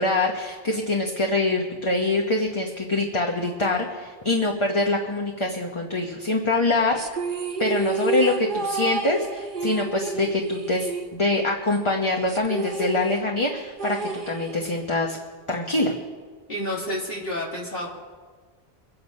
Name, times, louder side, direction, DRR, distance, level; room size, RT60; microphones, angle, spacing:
voice 1, 0.0-7.0 7.6-15.2 15.5-15.9, left 2 dB, 30° left, 1 dB, 1.1 m, -24 dB
sound 1, 7.0-11.6 11.9-12.0 12.3-14.9, right 4 dB, 55° right, 1.3 m, -30 dB
voice 2, 16.5-17.9, left 1 dB, 65° left, -3 dB, 3.0 m, -29 dB
24.0 x 8.4 x 5.3 m, 1.5 s
omnidirectional pair, 1.0 m